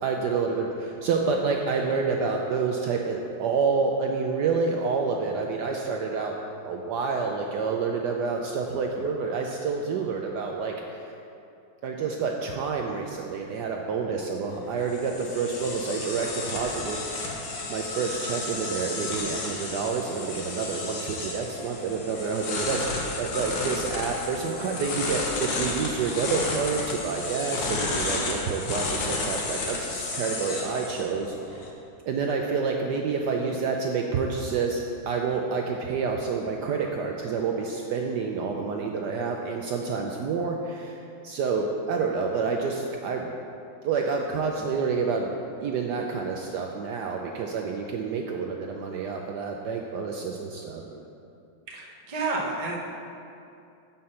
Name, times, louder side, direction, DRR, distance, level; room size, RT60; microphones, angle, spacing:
voice 1, 0.0-6.4 6.6-11.1 11.8-17.3 17.7-31.7 32.1-34.8 35.1-41.0 41.2-43.3 43.8-45.3 45.6-51.0, right 5 dB, 70° right, 1 dB, 1.0 m, -28 dB
sound 1, 14.5-31.7, left 3 dB, 65° left, 1.7 m, -32 dB
voice 2, 51.7-52.8, right 3 dB, 35° right, -2 dB, 0.6 m, -30 dB
7.6 x 5.8 x 5.5 m, 2.6 s
omnidirectional pair, 2.2 m